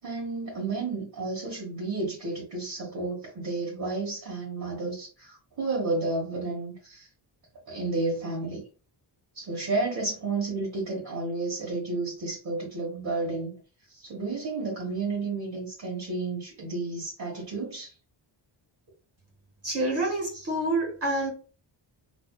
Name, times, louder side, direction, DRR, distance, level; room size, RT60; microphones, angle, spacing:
voice 1, 0.0-7.1 7.7-8.6 9.3-13.6 13.9-17.9, right 3 dB, 50° right, 1.3 m, -31 dB
voice 2, 19.6-21.3, right 2 dB, 30° right, 1.2 m, -27 dB
4.1 x 2.6 x 2.3 m
wide cardioid pair, 180°, 46 cm